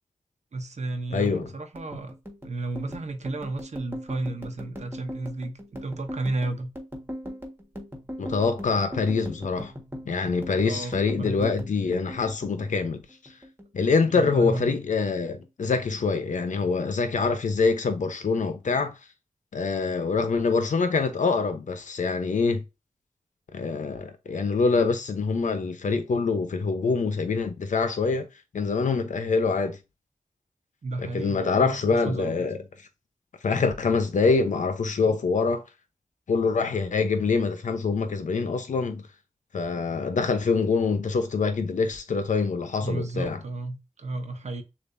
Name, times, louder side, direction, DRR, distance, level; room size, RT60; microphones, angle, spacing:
voice 1, 0.5-2.1 2.4-6.7 10.5-11.7 14.1-14.8 30.8-32.5 42.8-44.6, right 2 dB, 65° right, 0.9 m, -33 dB
voice 2, 1.1-1.5 8.2-9.7 10.1-13.0 13.7-18.9 19.5-22.6 23.5-28.3 28.5-29.8 31.0-32.6 33.4-35.6 36.3-39.1 39.5-43.4, left 4 dB, 85° left, 0.9 m, -25 dB
sound 1, 1.1-13.7 13.9-15.0 15.3-15.6 15.9-16.6, equal, 15° right, 1.6 m, -40 dB
6.7 x 2.7 x 2.7 m
wide cardioid pair, 65°, 13 cm